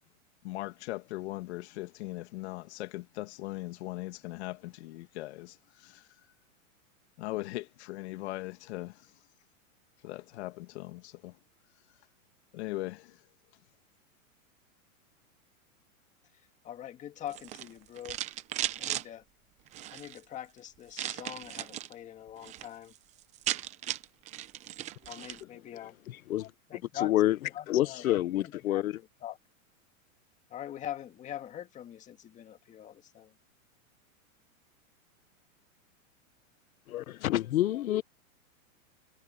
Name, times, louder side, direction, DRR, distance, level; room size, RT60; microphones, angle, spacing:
voice 1, 0.4-5.6 5.8-6.0 7.2-9.0 10.0-11.3 12.5-13.2, left 18 dB, 50° left, 2.3 m, -39 dB
voice 2, 16.6-18.2 18.8-19.2 19.9-22.9 25.1-26.0 26.7-27.1 27.5-28.8 29.2-29.4 30.5-33.3, left 11 dB, 15° left, 1.9 m, -43 dB
sound 1, 17.3-19.0 19.7-20.2 20.9-21.9 22.3-22.7 22.9-23.0 23.2-25.4, right 13 dB, 15° right, 0.7 m, -36 dB
voice 3, 27.0-27.4 27.7-29.0 36.9-38.0, left 14 dB, 75° left, 1.1 m, -27 dB
supercardioid pair, 160°, 42 cm